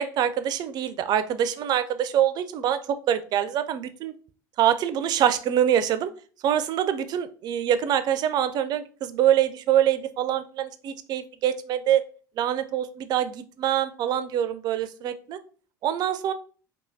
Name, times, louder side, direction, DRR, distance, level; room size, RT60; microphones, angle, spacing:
voice 1, 0.0-4.1 4.6-6.1 6.4-12.0 12.4-15.4 15.8-16.3, right 10 dB, 40° right, 12 dB, 0.4 m, -25 dB
3.5 x 2.8 x 2.6 m, 0.40 s
figure-of-eight pair, 65°, 11 cm